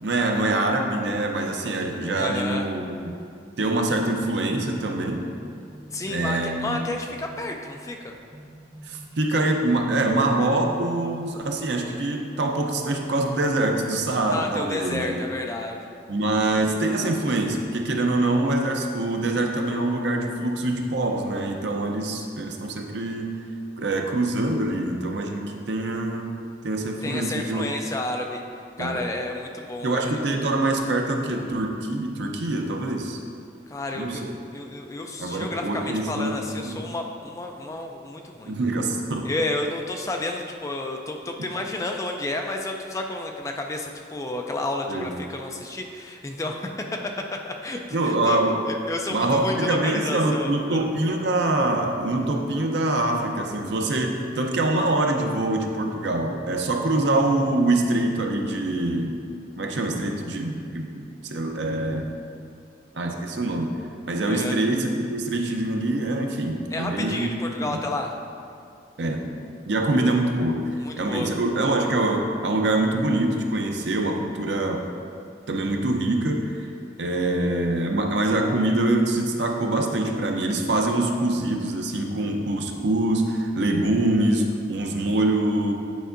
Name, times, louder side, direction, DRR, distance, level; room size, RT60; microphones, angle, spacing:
voice 1, 0.0-3.2 3.6-5.3 6.1-6.9 8.9-15.2 16.1-23.3 23.8-27.6 28.8-29.0 29.8-33.2 33.9-34.3 35.2-36.8 38.4-39.3 41.4-41.5 44.9-45.1 47.9-48.6 49.1-59.2 59.6-62.2 63.0-63.7 64.0-67.3 67.6-67.8 69.0-70.6 71.0-74.8 75.5-76.6 77.0-85.7, right 2 dB, 70° right, 2 dB, 0.6 m, -24 dB
voice 2, 2.2-2.7 5.9-8.2 14.3-15.9 27.0-28.4 28.8-30.2 33.7-34.3 34.5-38.5 39.2-46.7 47.3-48.4 48.7-50.8 64.3-64.6 66.7-68.1 70.8-71.3, left 2 dB, 15° left, 2 dB, 0.3 m, -31 dB
sound 1, 5.0-11.9, right 1 dB, 25° right, 1.4 m, -46 dB
9.2 x 4.5 x 2.5 m, 2.4 s
head